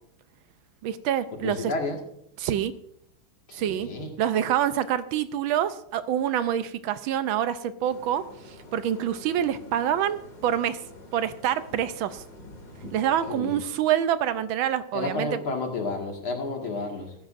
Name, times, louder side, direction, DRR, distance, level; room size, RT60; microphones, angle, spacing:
voice 1, 0.8-1.6 2.4-2.7 3.5-3.9 4.2-10.8 11.1-12.2 12.9-15.3, right 10 dB, 80° right, 13 dB, 1.4 m, -26 dB
voice 2, 1.4-2.0 3.5-4.1 13.3-13.6 14.9-17.1, left 3 dB, 80° left, 1 dB, 2.8 m, -31 dB
sound 1, 7.8-13.3, left 1 dB, 40° left, 2.8 m, -47 dB
15.0 x 13.0 x 2.5 m, 0.75 s
omnidirectional pair, 2.3 m